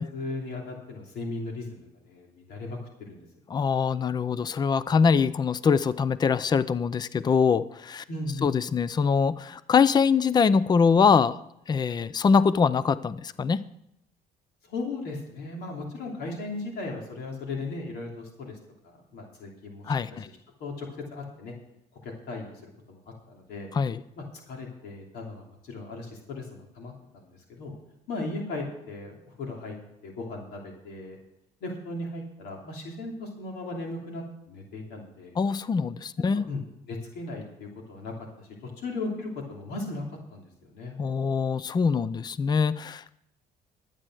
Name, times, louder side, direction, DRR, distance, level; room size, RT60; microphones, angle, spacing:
voice 1, 0.0-3.3 8.1-8.6 14.6-18.6 18.8-20.2 20.6-21.5 22.0-23.7 24.2-27.7 28.1-29.8 30.0-31.2 31.6-35.4 36.3-36.6 36.9-40.9, left 2 dB, 75° left, 0 dB, 3.0 m, -37 dB
voice 2, 3.5-8.0 8.4-11.4 11.7-13.6 19.9-20.3 23.7-24.0 35.4-36.5 41.0-43.1, left 5 dB, 25° left, 16 dB, 0.5 m, -23 dB
12.0 x 9.0 x 6.2 m, 0.80 s
cardioid pair, 110°, 17 cm